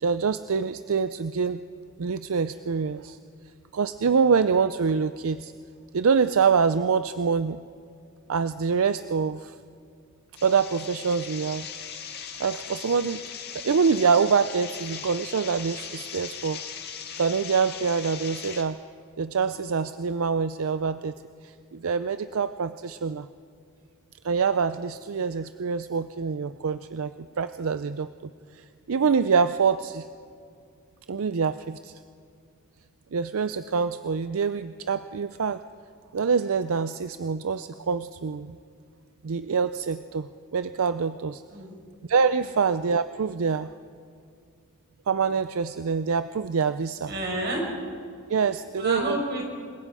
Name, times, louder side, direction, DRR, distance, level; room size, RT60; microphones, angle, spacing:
voice 1, 0.0-1.6 2.0-3.2 3.7-5.5 5.9-7.6 8.3-9.6 10.4-11.7 12.4-13.2 13.5-16.6 17.2-18.8 19.2-21.1 21.4-23.3 24.2-28.1 28.5-30.0 31.1-31.9 33.1-35.6 36.1-38.6 39.2-41.4 42.1-43.7 45.1-47.1 48.3-49.2, right 5 dB, 80° right, 12 dB, 0.5 m, -25 dB
sound 1, 10.4-18.6, left 7 dB, 50° left, 1.9 m, -39 dB
voice 2, 47.1-47.6 48.8-49.5, right 1 dB, 50° right, 0 dB, 5.6 m, -29 dB
27.5 x 21.5 x 4.9 m, 2.3 s
head